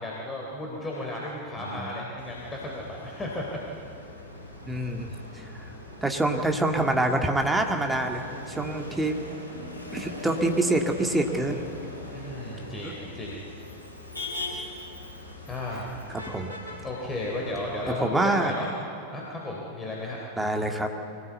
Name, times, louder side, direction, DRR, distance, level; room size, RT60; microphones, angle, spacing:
voice 1, 0.0-3.6 12.1-13.4 15.5-16.1 16.8-18.7 19.1-20.2, left 1 dB, 15° left, -3 dB, 3.5 m, -34 dB
voice 2, 1.6-2.0 4.7-5.5 6.0-9.2 9.9-11.6 12.8-12.9 16.1-16.6 17.9-18.5 20.4-20.9, right 2 dB, 5° right, 3 dB, 2.0 m, -26 dB
Motor vehicle (road), 2.2-17.9, left 2 dB, 80° left, 4.7 m, -41 dB
24.0 x 17.5 x 8.2 m, 2.6 s
figure-of-eight pair, 90°, 0 cm